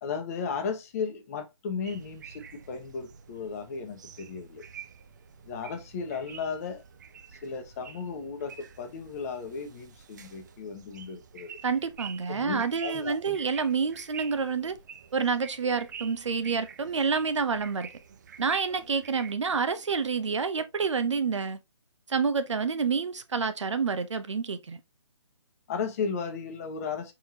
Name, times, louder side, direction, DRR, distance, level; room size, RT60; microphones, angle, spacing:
voice 1, 0.0-4.6 5.4-6.8 7.3-11.6 12.3-13.4 25.7-27.1, left 5 dB, 30° left, 0.9 m, -35 dB
sound 1, 1.8-19.3, right 7 dB, 35° right, 0.5 m, -47 dB
voice 2, 11.6-14.7 15.1-17.9 18.4-21.6 22.1-24.8, right 5 dB, 70° right, 0.9 m, -28 dB
4.7 x 3.6 x 2.8 m
figure-of-eight pair, 150°, 16 cm